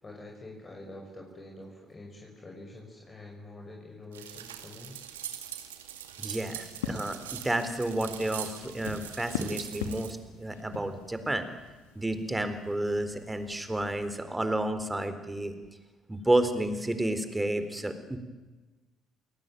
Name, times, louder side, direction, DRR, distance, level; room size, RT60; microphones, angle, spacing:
voice 1, 0.0-5.0, left 2 dB, 30° left, 0 dB, 6.1 m, -46 dB
sound 1, 4.1-10.1, right 10 dB, 85° right, 2.0 m, -42 dB
voice 2, 6.2-11.5 12.0-15.5 16.1-18.2, right 1 dB, 15° right, 10 dB, 4.0 m, -31 dB
sound 2, 6.4-14.1, left 5 dB, 85° left, 2.4 m, -42 dB
28.5 x 19.0 x 9.3 m, 1.2 s
hypercardioid pair, 50°, 0 cm